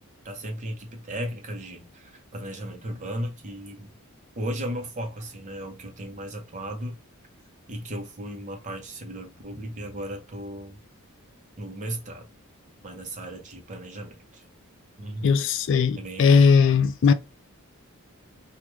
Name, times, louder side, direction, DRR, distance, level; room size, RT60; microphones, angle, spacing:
voice 1, 0.2-3.9 4.4-7.0 7.7-10.8 11.6-12.2 12.8-14.4 15.0-15.3 16.0-16.3, right 1 dB, 35° right, 0.8 m, -35 dB
voice 2, 15.2-17.1, left 5 dB, 55° left, 0.3 m, -18 dB
3.1 x 2.4 x 3.3 m
head